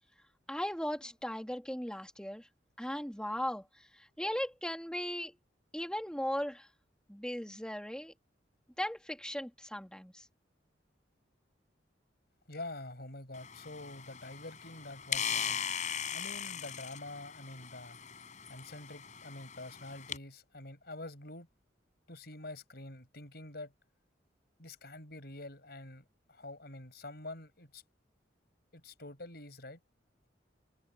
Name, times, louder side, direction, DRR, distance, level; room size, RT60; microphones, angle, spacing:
voice 1, 0.5-2.5 2.8-3.6 4.0-5.3 5.7-6.7 7.1-8.1 8.8-10.2, equal, 5° left, 3.1 m, -37 dB
voice 2, 12.5-15.6 16.1-18.0 18.5-21.5 22.1-23.7 24.6-27.8 28.7-29.8, left 2 dB, 60° left, 6.8 m, -46 dB
sound 1, 13.3-20.2, left 8 dB, 40° left, 5.6 m, -39 dB
head